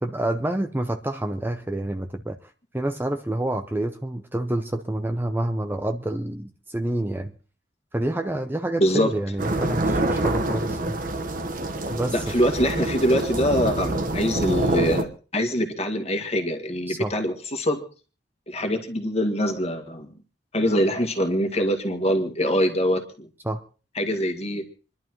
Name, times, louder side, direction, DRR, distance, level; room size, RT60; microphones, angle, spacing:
voice 1, 0.0-2.4 2.7-7.3 7.9-11.0 11.9-12.3 16.9-17.1 23.4-23.6, right 1 dB, 10° right, 6 dB, 0.6 m, -28 dB
voice 2, 8.8-9.1 12.1-17.8 18.5-20.1 20.5-23.3 24.0-24.6, equal, 35° left, 5 dB, 1.8 m, -24 dB
sound 1, 9.4-15.0, right 1 dB, 50° right, 1.2 m, -26 dB
28.0 x 11.5 x 3.0 m, 0.37 s
head